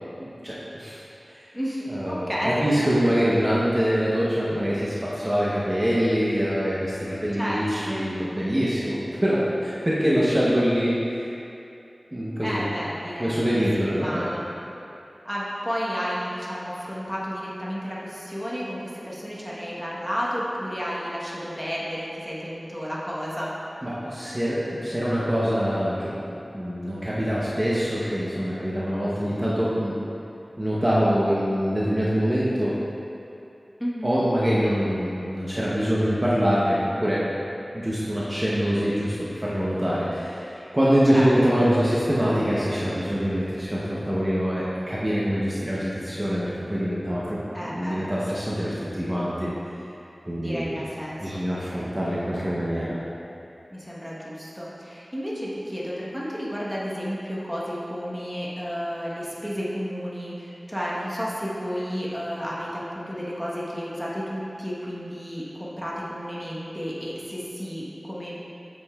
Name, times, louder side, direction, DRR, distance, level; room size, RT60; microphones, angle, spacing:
voice 1, 0.2-1.0 1.9-2.3 2.6-11.2 12.1-12.7 13.2-14.3 23.8-29.9 30.6-32.7 34.0-37.2 37.7-49.5 50.3-50.8 51.2-53.0, equal, 25° right, -8 dB, 0.9 m, -24 dB
voice 2, 1.5-2.7 7.4-8.1 10.0-10.4 12.4-14.5 15.2-23.5 33.8-34.2 41.1-41.3 47.5-47.9 50.4-51.4 53.7-68.4, equal, ahead, -7 dB, 1.2 m, -32 dB
8.0 x 5.3 x 2.4 m, 2.8 s
wide cardioid pair, 60°, 0 cm